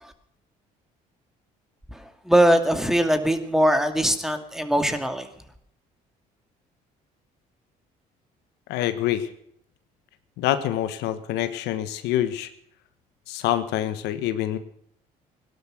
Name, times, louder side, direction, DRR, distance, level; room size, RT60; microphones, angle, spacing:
voice 1, 2.3-5.3, right 1 dB, ahead, 8 dB, 2.4 m, -21 dB
voice 2, 8.7-9.3 10.4-12.5 13.3-14.6, left 12 dB, 80° left, 11 dB, 1.4 m, -26 dB
17.5 x 12.0 x 6.1 m, 0.72 s
supercardioid pair, 75°, 17 cm